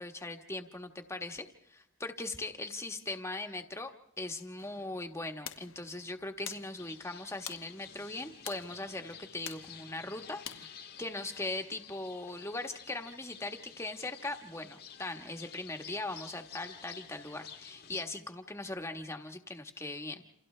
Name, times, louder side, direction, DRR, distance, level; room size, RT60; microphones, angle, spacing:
voice 1, 0.0-10.7 11.0-20.2, left 2 dB, 15° left, 5 dB, 1.3 m, -40 dB
sound 1, 4.6-10.7, left 9 dB, 70° left, 1.2 m, -49 dB
sound 2, 6.8-18.0, left 8 dB, 50° left, 1.4 m, -52 dB
28.5 x 28.5 x 3.3 m, 0.76 s
head